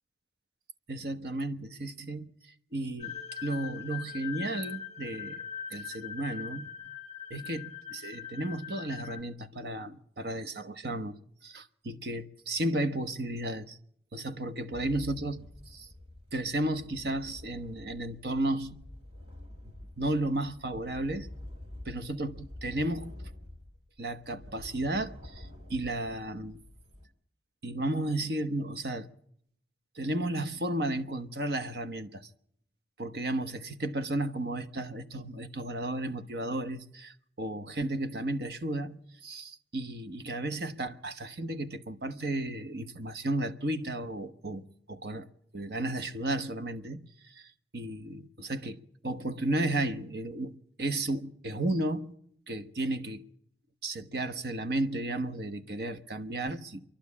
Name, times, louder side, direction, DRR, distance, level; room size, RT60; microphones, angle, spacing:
voice 1, 0.9-2.3 2.7-3.1 3.4-5.4 5.7-6.7 7.3-11.1 11.4-13.8 14.1-15.9 16.3-18.8 20.0-21.3 21.8-23.1 24.0-26.6 27.6-29.1 29.9-32.2 33.0-45.3 45.5-52.1 52.5-53.3 53.8-56.8, right 1 dB, 60° right, 1.0 m, -33 dB
sound 1, 3.0-9.2, left 9 dB, 40° left, 0.7 m, -41 dB
sound 2, 14.7-27.1, left 1 dB, 35° right, 2.4 m, -48 dB
27.5 x 11.5 x 8.4 m
head